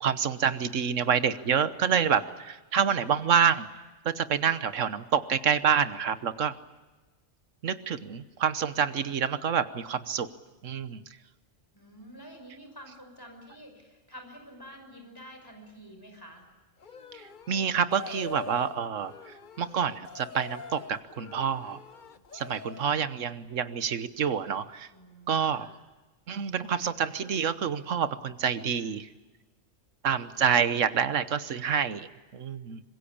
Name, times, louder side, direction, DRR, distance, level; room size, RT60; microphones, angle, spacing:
voice 1, 0.0-3.7 4.0-6.5 7.6-10.3 10.6-11.0 17.1-19.1 19.6-21.8 22.3-24.9 25.3-25.7 26.3-29.1 30.0-32.8, right 7 dB, 75° right, 13 dB, 1.4 m, -27 dB
voice 2, 11.7-16.4 24.9-25.8, equal, 15° left, 3 dB, 5.8 m, -48 dB
sound 1, 16.8-23.0, left 5 dB, 40° left, 1.1 m, -44 dB
25.0 x 21.5 x 8.7 m, 1.2 s
omnidirectional pair, 1.3 m